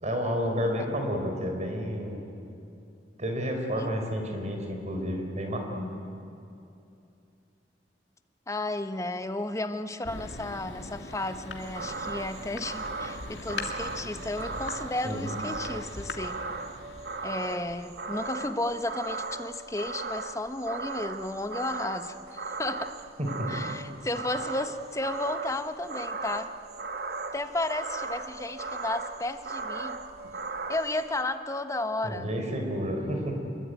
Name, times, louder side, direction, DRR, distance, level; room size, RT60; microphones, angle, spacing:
voice 1, 0.0-2.2 3.2-5.9 15.0-15.3 23.2-23.5 32.0-33.4, equal, 40° right, 3 dB, 4.4 m, -30 dB
voice 2, 8.5-16.4 17.2-22.9 23.5-26.5 27.3-30.1 30.7-32.3, left 2 dB, 20° left, 9 dB, 1.0 m, -33 dB
Thunder, 10.0-18.4, left 2 dB, 85° left, 2.4 m, -41 dB
sound 1, 11.6-31.2, right 3 dB, 60° right, 1.3 m, -37 dB
26.5 x 22.5 x 9.3 m, 2.7 s
head